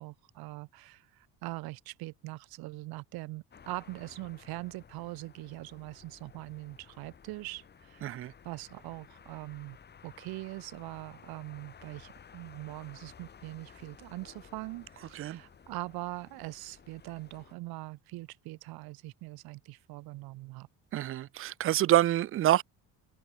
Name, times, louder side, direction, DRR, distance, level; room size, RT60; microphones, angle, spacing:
voice 1, 0.0-9.8 10.0-20.7, right 20 dB, 70° right, 3.5 m, -42 dB
sound 1, 3.5-17.5, left 7 dB, 25° left, 4.2 m, -55 dB
voice 2, 8.0-8.3 15.1-15.4 20.9-22.6, right 13 dB, 35° right, 0.5 m, -26 dB
cardioid pair, 165°, 38 cm